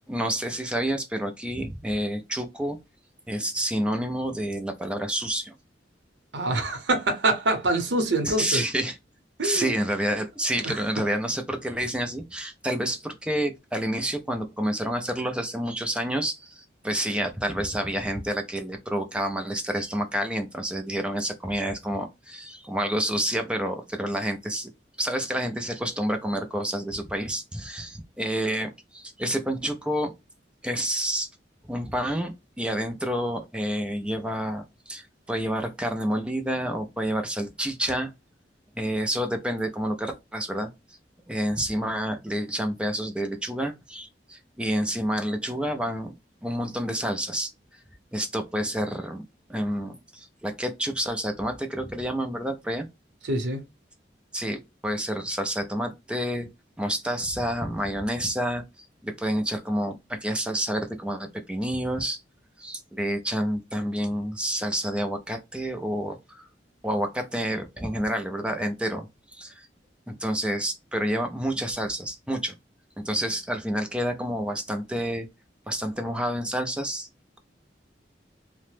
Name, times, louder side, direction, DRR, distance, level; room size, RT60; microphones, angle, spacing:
voice 1, 0.1-2.8 3.3-5.5 8.2-9.0 9.4-24.7 25.0-30.1 30.6-31.3 31.7-38.1 38.7-40.7 41.3-46.2 46.4-47.5 48.1-49.2 49.5-52.9 54.3-56.5 56.8-58.6 59.0-62.2 62.6-66.4 66.8-69.7 70.1-72.5 73.0-75.3 75.7-77.1, equal, 5° right, 0.4 m, -29 dB
voice 2, 6.3-8.6 9.4-9.7 10.6-10.8 53.2-53.6, right 2 dB, 75° right, 0.8 m, -25 dB
2.9 x 2.1 x 3.2 m
head